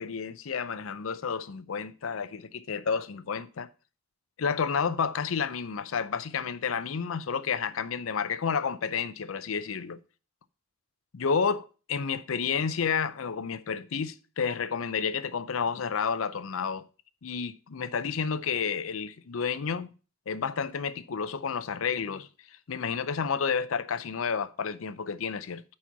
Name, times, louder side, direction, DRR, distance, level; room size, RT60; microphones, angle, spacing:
voice 1, 0.0-3.7 4.4-10.0 11.1-16.8 17.2-19.9 20.3-25.6, left 6 dB, 80° left, 0.5 m, -30 dB
9.0 x 4.3 x 5.7 m
head